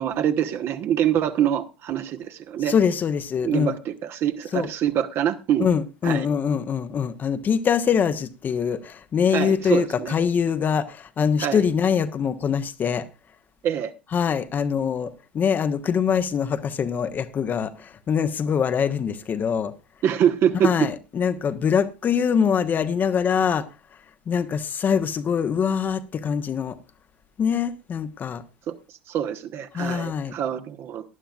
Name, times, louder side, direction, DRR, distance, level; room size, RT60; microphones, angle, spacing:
voice 1, 0.0-2.7 3.4-5.7 6.0-6.3 9.3-10.1 11.4-11.6 13.6-13.9 20.0-20.7 28.7-28.8 29.1-31.0, right 10 dB, 40° right, 1.2 m, -25 dB
voice 2, 2.6-3.8 4.5-4.7 5.6-13.0 14.1-19.7 20.6-23.7 24.3-26.8 27.4-28.4 29.7-30.3, left 7 dB, 30° left, 1.0 m, -23 dB
18.5 x 11.5 x 2.4 m
figure-of-eight pair, 75°, 6 cm